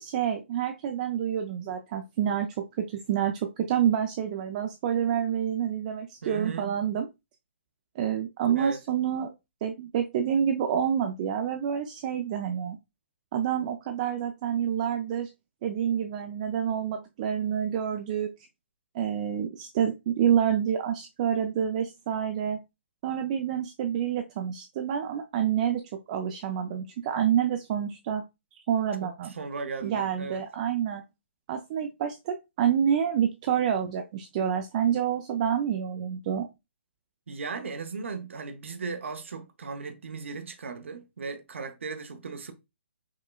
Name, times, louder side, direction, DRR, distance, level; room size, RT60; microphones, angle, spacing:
voice 1, 0.0-7.1 8.0-9.3 9.6-12.8 13.3-15.3 15.6-18.3 18.9-22.6 23.0-25.8 26.1-28.2 28.7-29.3 29.8-31.0 31.5-36.5, right 9 dB, 35° right, 0.4 m, -28 dB
voice 2, 6.2-6.8 8.5-8.8 29.0-30.4 37.3-42.5, right 4 dB, 70° right, 0.7 m, -37 dB
4.8 x 2.2 x 2.2 m
hypercardioid pair, 140°, 7 cm